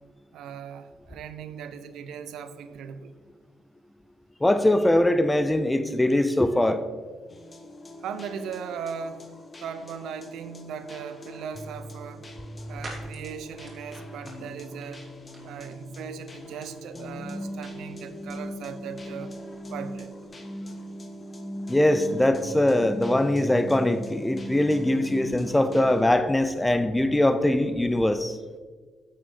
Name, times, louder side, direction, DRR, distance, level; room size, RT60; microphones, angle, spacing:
voice 1, 0.3-3.1 8.0-9.3 9.6-12.3 12.7-15.1 15.4-19.3 19.7-20.1, right 7 dB, 80° right, 0.7 m, -38 dB
voice 2, 4.4-6.8 21.7-28.4, left 1 dB, 10° left, 0.5 m, -22 dB
sound 1, 7.3-26.0, equal, 30° left, 1.2 m, -40 dB
sound 2, 11.6-20.3, right 2 dB, 30° right, 3.0 m, -51 dB
9.7 x 7.6 x 3.9 m
cardioid pair, 90°, 0 cm